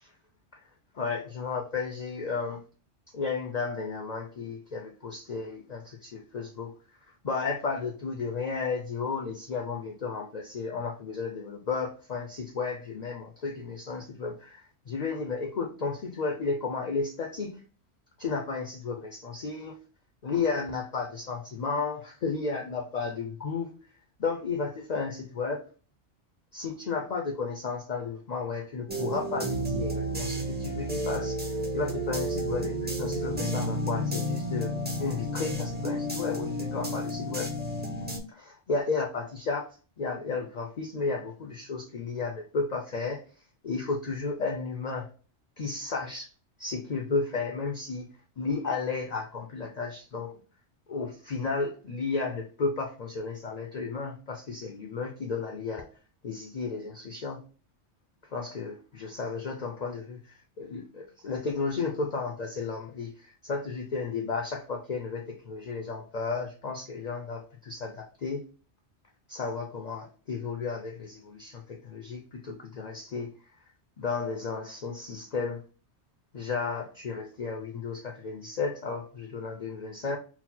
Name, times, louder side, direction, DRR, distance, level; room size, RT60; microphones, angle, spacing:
voice 1, 0.9-2.6 3.1-17.6 18.2-19.7 20.2-23.7 24.2-25.6 26.5-31.4 31.7-34.7 35.0-37.5 38.3-43.2 43.6-45.1 45.6-46.3 46.6-48.1 48.4-50.4 50.9-55.9 56.2-57.4 58.3-68.4 69.3-73.3 74.0-75.6 76.3-80.2, left 4 dB, 50° left, 3 dB, 0.5 m, -33 dB
sound 1, 28.9-38.2, equal, 10° right, 0.6 m, -31 dB
4.0 x 2.1 x 4.2 m, 0.38 s
omnidirectional pair, 1.2 m